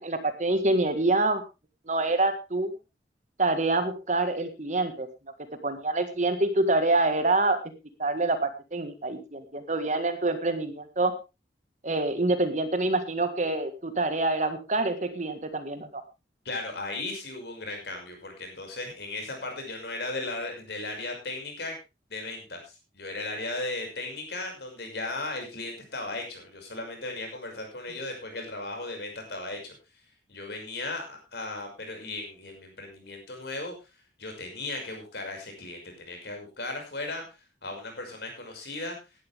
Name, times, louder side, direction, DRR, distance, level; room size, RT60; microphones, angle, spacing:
voice 1, 0.0-1.4 1.9-2.7 3.4-5.1 5.6-7.6 8.0-11.1 11.8-16.0, right 2 dB, 40° right, 9 dB, 1.7 m, -26 dB
voice 2, 16.4-21.8 22.1-29.8 30.3-33.7 34.2-37.2 37.6-38.9, left 2 dB, 60° left, 3 dB, 6.0 m, -36 dB
17.0 x 11.5 x 3.5 m, 0.27 s
head